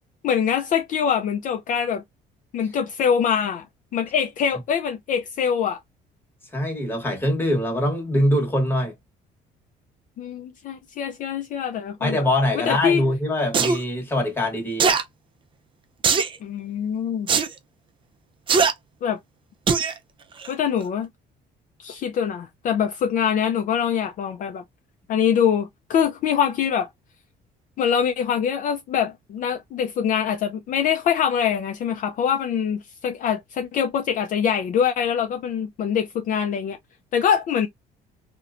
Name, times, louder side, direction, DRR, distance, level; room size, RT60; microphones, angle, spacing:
voice 1, 0.2-2.0 2.5-3.6 3.9-5.8 10.2-12.3 12.5-13.0 16.4-17.3 19.0-19.2 20.5-21.1 21.8-24.6 25.1-26.9 27.8-36.8 37.1-37.7, left 8 dB, 50° left, 0.4 m, -24 dB
voice 2, 6.5-8.9 12.0-15.0, left 1 dB, 15° left, 1.0 m, -23 dB
sound 1, 13.5-13.8 14.8-15.0 16.0-16.4 17.3-17.5 18.5-18.7 19.7-19.9 20.4-20.5, right 5 dB, 30° right, 0.4 m, -19 dB
2.7 x 2.1 x 2.4 m
cardioid pair, 110°, 17 cm